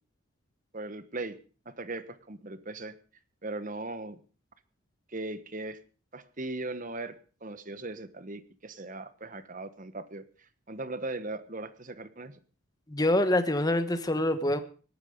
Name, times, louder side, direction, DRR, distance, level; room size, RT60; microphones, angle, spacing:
voice 1, 0.7-1.4 1.6-2.9 3.4-4.2 5.1-5.8 6.1-7.2 7.4-10.2 10.7-12.4, right 2 dB, 35° right, 12 dB, 1.2 m, -38 dB
voice 2, 12.9-14.6, left 1 dB, 15° left, 10 dB, 1.3 m, -25 dB
18.0 x 12.5 x 5.2 m, 0.39 s
head